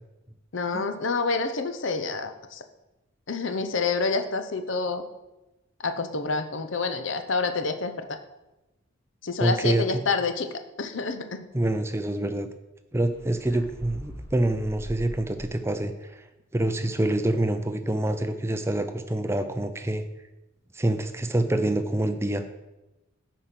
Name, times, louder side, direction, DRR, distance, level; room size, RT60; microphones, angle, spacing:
voice 1, 0.5-2.6 3.3-5.0 5.8-8.1 9.2-11.5, left 4 dB, 65° left, 8 dB, 0.8 m, -28 dB
voice 2, 9.4-9.8 11.5-12.5 12.9-16.2 16.5-20.1 20.7-22.4, right 1 dB, 15° right, 9 dB, 0.5 m, -26 dB
sound 1, 13.1-15.9, equal, 20° left, 1.6 m, -42 dB
9.0 x 5.1 x 5.9 m, 0.99 s
head